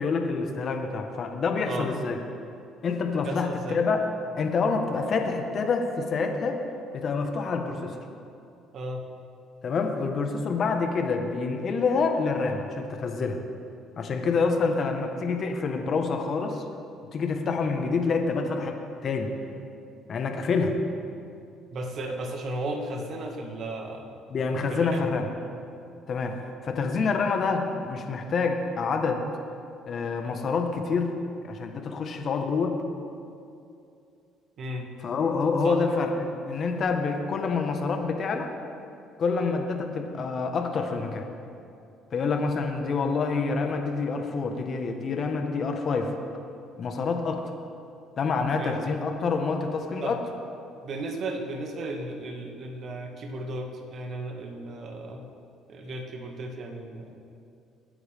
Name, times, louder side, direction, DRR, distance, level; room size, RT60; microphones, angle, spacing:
voice 1, 0.0-2.2 2.8-4.0 4.4-6.6 6.9-8.0 9.6-13.4 14.0-16.6 17.1-19.3 20.1-20.8 24.3-25.3 26.1-29.2 29.9-31.1 31.4-32.8 35.0-38.5 39.2-41.3 42.1-46.1 46.8-47.5 48.2-50.2, left 4 dB, 50° left, 4 dB, 1.5 m, -27 dB
voice 2, 3.2-3.8 8.7-9.0 21.7-24.1 24.7-25.0 34.6-34.9 35.6-35.8 48.3-48.9 50.0-50.1 50.8-55.2 55.7-57.2, right 2 dB, 55° right, 2 dB, 2.1 m, -35 dB
22.0 x 9.3 x 3.7 m, 2.6 s
supercardioid pair, 85°, 0 cm